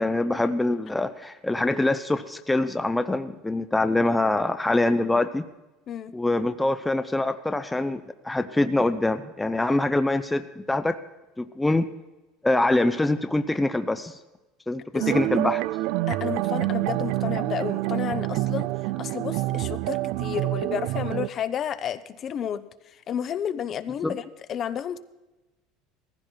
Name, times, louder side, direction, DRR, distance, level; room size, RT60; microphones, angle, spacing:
voice 1, 0.0-5.4 6.1-11.0 11.4-11.8 12.4-14.2 14.7-15.6 24.0-24.2, left 2 dB, 10° left, 9 dB, 0.6 m, -24 dB
sound 1, 15.0-21.3, right 18 dB, 70° right, 0.4 m, -27 dB
voice 2, 16.1-18.7 19.0-22.6 23.1-24.2 24.5-25.0, left 9 dB, 40° left, 12 dB, 0.8 m, -31 dB
17.5 x 15.0 x 4.5 m, 1.0 s
supercardioid pair, 120°, 0 cm